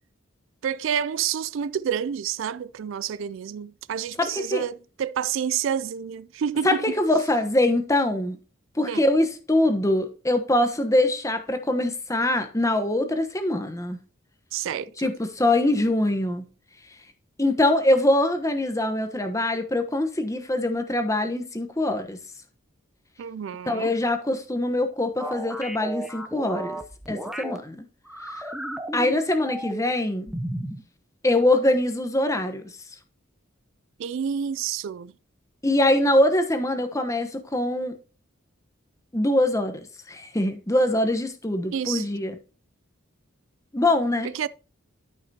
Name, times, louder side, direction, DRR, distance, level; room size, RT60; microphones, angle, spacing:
voice 1, 0.6-6.8 8.8-9.0 14.5-15.1 23.2-23.9 34.0-35.1 41.7-42.1 44.2-44.5, right 8 dB, 65° right, 0.3 m, -29 dB
voice 2, 4.2-4.6 6.6-8.4 8.8-14.0 15.0-16.4 17.4-22.2 23.7-26.8 27.1-27.8 28.3-28.5 28.9-30.3 31.2-32.6 35.6-37.9 39.1-39.8 40.1-42.4 43.7-44.3, left 1 dB, 15° left, 1.0 m, -23 dB
sound 1, 25.2-27.6 28.1-29.9 30.3-30.8, right 1 dB, ahead, 0.7 m, -34 dB
12.5 x 5.8 x 2.8 m
head